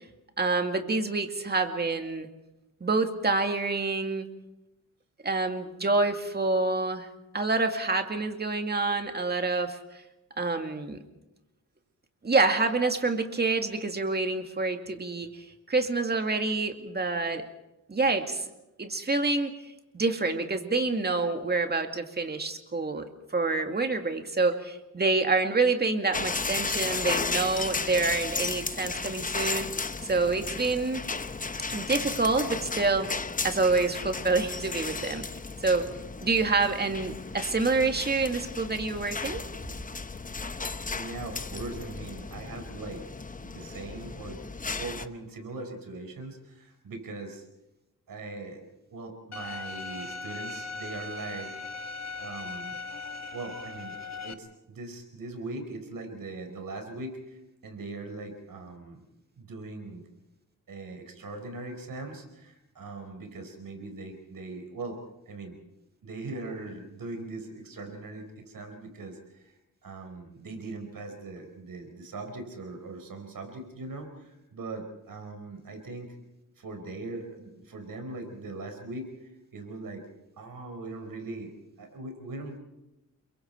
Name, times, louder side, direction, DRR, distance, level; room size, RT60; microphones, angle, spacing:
voice 1, 0.4-2.3 2.8-4.3 5.2-7.1 7.3-9.8 10.4-11.0 12.2-17.4 17.9-18.5 18.8-19.5 19.9-23.1 23.3-29.7 30.0-31.0 31.7-33.1 33.4-35.2 35.6-35.9 36.2-39.4, right 3 dB, 30° right, 6 dB, 2.2 m, -27 dB
construction glass debris falling though chute into dumpster, 26.1-45.1, left 4 dB, 25° left, 0.8 m, -34 dB
voice 2, 40.9-43.0 43.4-47.4 48.1-51.5 52.2-52.8 53.3-53.9 54.2-59.0 59.4-60.0 60.7-65.0 65.3-65.6 66.0-69.2 69.8-76.1 76.6-79.1 79.5-80.0 80.4-81.5 81.8-82.6, right 2 dB, 70° right, 5 dB, 4.7 m, -40 dB
Bowed string instrument, 49.3-54.3, left 3 dB, 50° left, 1.3 m, -39 dB
30.0 x 22.5 x 4.5 m, 0.94 s
wide cardioid pair, 120°, 35 cm